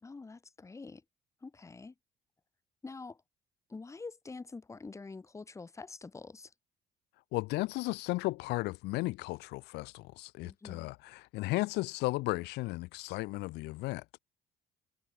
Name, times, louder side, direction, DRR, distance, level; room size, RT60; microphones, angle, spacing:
voice 1, 0.0-1.0 1.4-1.9 2.8-3.2 3.7-6.5 10.4-10.9, left 3 dB, 15° left, 1.1 m, -46 dB
voice 2, 7.3-14.0, left 21 dB, 85° left, 0.6 m, -35 dB
cardioid pair, 110°, 17 cm